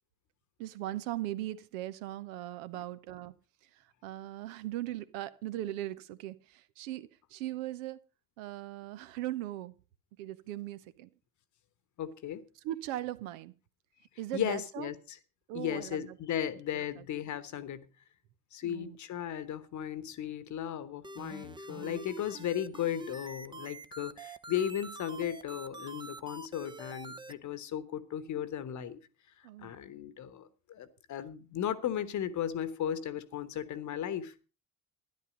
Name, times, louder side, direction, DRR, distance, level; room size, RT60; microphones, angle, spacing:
voice 1, 0.6-3.3 3.6-8.0 8.4-9.7 10.2-11.1 12.6-13.5 14.2-14.9 15.5-16.2 16.8-17.0 18.6-19.0 21.8-22.2 29.4-29.7, right 14 dB, 60° right, 1.0 m, -39 dB
voice 2, 12.0-12.5 14.3-15.2 15.5-17.9 18.5-29.0 29.6-34.5, left 10 dB, 40° left, 1.2 m, -36 dB
sound 1, 21.0-27.3, right 2 dB, 10° right, 0.8 m, -46 dB
13.0 x 10.5 x 5.1 m
figure-of-eight pair, 55°, 45 cm